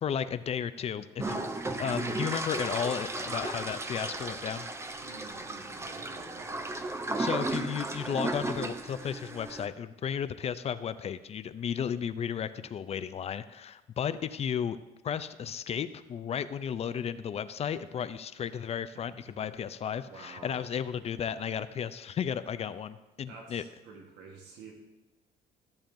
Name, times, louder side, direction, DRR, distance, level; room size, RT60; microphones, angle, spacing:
voice 1, 0.0-1.4 1.8-4.7 7.2-14.8 15.0-23.6, left 8 dB, 40° left, 13 dB, 0.4 m, -34 dB
sound 1, 1.2-9.7, right 2 dB, 15° right, 0.6 m, -35 dB
voice 2, 5.0-7.0 18.9-19.0 19.4-19.5 20.0-20.7 23.3-24.7, right 4 dB, 90° right, 1 dB, 1.3 m, -50 dB
14.0 x 7.1 x 2.6 m, 1.1 s
cardioid pair, 110°, 17 cm